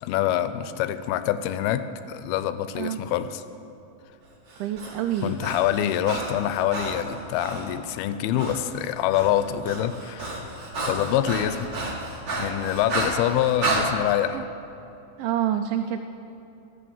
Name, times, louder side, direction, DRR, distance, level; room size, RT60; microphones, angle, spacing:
voice 1, 0.0-3.4 5.2-10.5 10.8-11.7 12.4-14.5, left 11 dB, 85° left, 12 dB, 2.4 m, -25 dB
Breathing, 4.5-7.7 8.4-8.6 8.9-13.8, right 2 dB, 60° right, 1.2 m, -31 dB
voice 2, 4.6-5.4 14.3-14.4 15.2-16.0, right 11 dB, 80° right, 5 dB, 2.2 m, -27 dB
11.5 x 8.5 x 7.1 m, 2.9 s
omnidirectional pair, 4.5 m